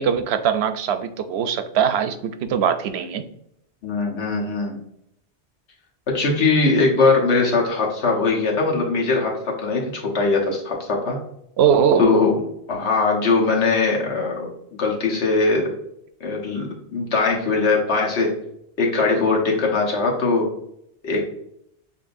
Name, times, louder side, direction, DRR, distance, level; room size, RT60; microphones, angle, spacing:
voice 1, 0.0-3.2 11.6-12.0, right 8 dB, 70° right, 9 dB, 0.8 m, -21 dB
voice 2, 3.8-4.8 6.1-11.2 12.0-12.4 12.7-14.5 14.8-15.7 16.2-18.3 18.8-20.5 21.0-21.3, left 3 dB, 75° left, -1 dB, 1.4 m, -20 dB
7.0 x 2.8 x 2.6 m, 0.75 s
omnidirectional pair, 1.1 m